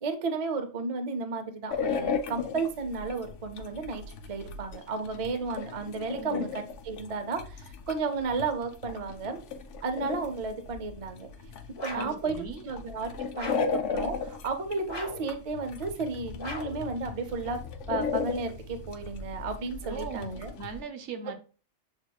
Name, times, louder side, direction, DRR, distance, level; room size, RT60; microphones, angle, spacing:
voice 1, 0.0-4.0 4.3-9.4 9.8-11.3 11.8-12.3 12.6-17.6 17.9-20.5, right 4 dB, 40° right, 0.5 m, -33 dB
sound 1, 1.7-20.8, left 5 dB, 75° left, 0.9 m, -36 dB
voice 2, 6.2-6.5 12.0-12.6 19.8-21.3, right 4 dB, 70° right, 1.0 m, -39 dB
sound 2, 11.8-12.2 13.3-13.8 14.9-15.3 16.4-16.9, left 2 dB, 25° left, 0.8 m, -39 dB
7.3 x 2.9 x 2.3 m
omnidirectional pair, 1.3 m